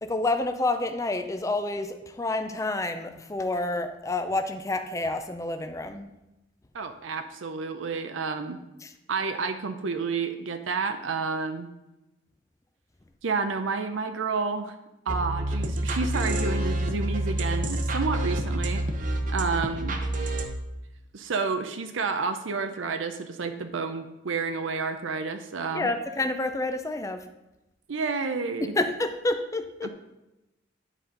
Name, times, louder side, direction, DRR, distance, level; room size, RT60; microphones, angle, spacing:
voice 1, 0.0-6.1 8.8-8.9 25.7-27.2 28.8-29.9, left 2 dB, 15° left, 7 dB, 0.5 m, -29 dB
voice 2, 6.7-8.6 9.1-11.7 13.2-14.8 15.1-18.9 19.3-20.0 21.1-25.9 27.9-28.7 29.8-29.9, right 4 dB, 85° right, 8 dB, 0.6 m, -30 dB
sound 1, 15.1-20.5, right 1 dB, 45° right, 0.8 m, -28 dB
10.0 x 4.2 x 5.2 m, 0.95 s
head